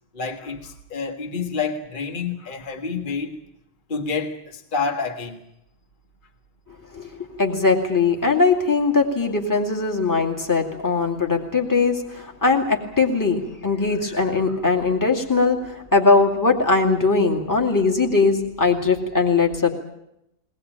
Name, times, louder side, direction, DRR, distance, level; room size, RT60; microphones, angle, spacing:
voice 1, 0.1-3.4 3.9-5.4, left 5 dB, 35° left, 1.7 m, -28 dB
voice 2, 7.4-19.7, left 4 dB, 10° left, 2.5 m, -20 dB
22.0 x 19.5 x 9.0 m
omnidirectional pair, 1.6 m